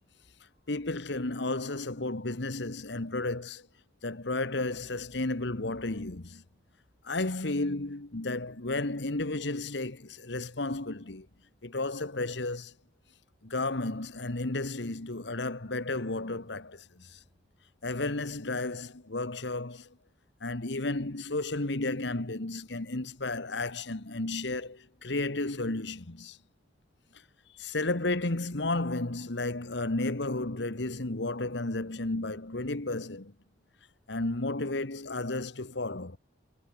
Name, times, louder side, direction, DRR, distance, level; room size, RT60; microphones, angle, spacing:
voice 1, 0.7-3.7 4.0-6.4 7.0-11.3 11.6-12.7 13.4-17.2 17.8-19.9 20.4-26.4 27.5-33.3 34.1-36.2, left 2 dB, 65° left, 1.5 m, -33 dB
head